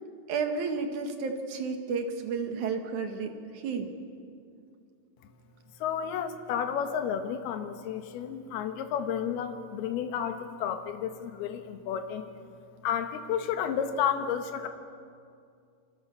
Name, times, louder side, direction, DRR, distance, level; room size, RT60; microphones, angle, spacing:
voice 1, 0.3-3.9, right 5 dB, 55° right, 5 dB, 2.5 m, -32 dB
voice 2, 5.8-12.3 12.8-14.7, left 8 dB, 65° left, 6 dB, 3.1 m, -31 dB
28.5 x 25.5 x 7.0 m, 2.3 s
omnidirectional pair, 5.3 m